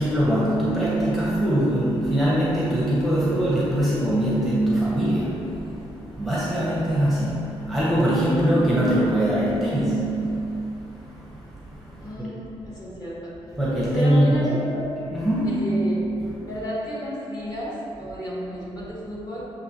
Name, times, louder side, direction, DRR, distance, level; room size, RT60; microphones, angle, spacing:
voice 1, 0.0-12.1 13.6-14.3 15.1-15.6, right 1 dB, ahead, -9 dB, 0.7 m, -23 dB
voice 2, 12.0-13.3 13.9-14.9 15.4-16.1 16.5-19.5, equal, 35° left, -6 dB, 1.1 m, -31 dB
7.1 x 2.6 x 2.7 m, 2.8 s
cardioid pair, 115°, 11 cm